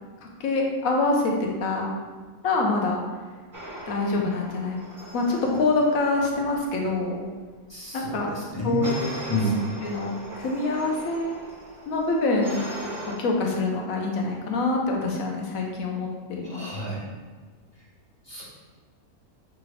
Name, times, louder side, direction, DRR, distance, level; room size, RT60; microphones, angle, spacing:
voice 1, 0.2-1.3 1.6-1.9 2.4-3.0 3.9-4.8 5.1-7.3 7.9-8.3 8.6-8.9 9.8-11.4 11.9-12.7 13.2-16.7, left 3 dB, 70° left, 0 dB, 1.1 m, -25 dB
sound 1, 3.5-6.7 8.8-13.2, right 1 dB, 30° right, 0.3 m, -39 dB
voice 2, 7.7-9.0 9.3-9.6 16.4-17.0 18.2-18.4, equal, 25° left, -6 dB, 0.6 m, -29 dB
5.8 x 2.5 x 3.2 m, 1.4 s
omnidirectional pair, 1.6 m